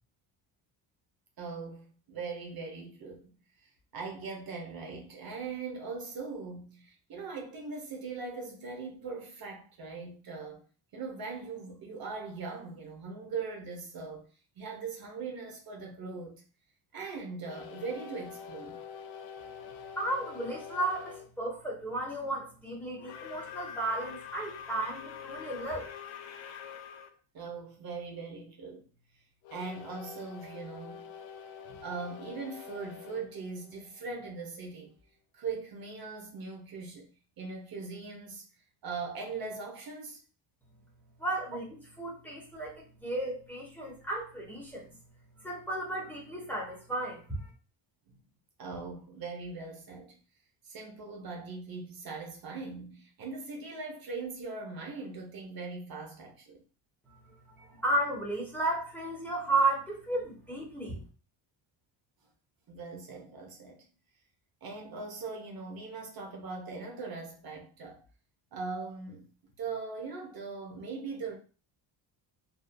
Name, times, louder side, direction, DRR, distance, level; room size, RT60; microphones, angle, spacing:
voice 1, 1.4-3.3 3.6-10.6 10.9-14.3 14.6-16.4 16.9-18.8 27.3-28.8 29.5-31.1 31.7-34.9 35.3-37.1 37.4-38.5 38.8-40.2 48.6-50.2 50.6-56.6 57.6-57.8 62.7-63.8 64.6-68.0 68.5-69.3 69.6-71.4, right 4 dB, 50° right, 0.8 m, -40 dB
sound 1, 17.4-21.3 23.0-27.1 29.4-34.3, left 7 dB, 80° left, 0.5 m, -46 dB
voice 2, 20.0-25.9 41.2-41.6 42.0-45.0 45.4-47.5 57.3-57.4 57.8-61.0, right 2 dB, 5° left, 0.9 m, -33 dB
2.6 x 2.4 x 2.2 m
cardioid pair, 95°, 47 cm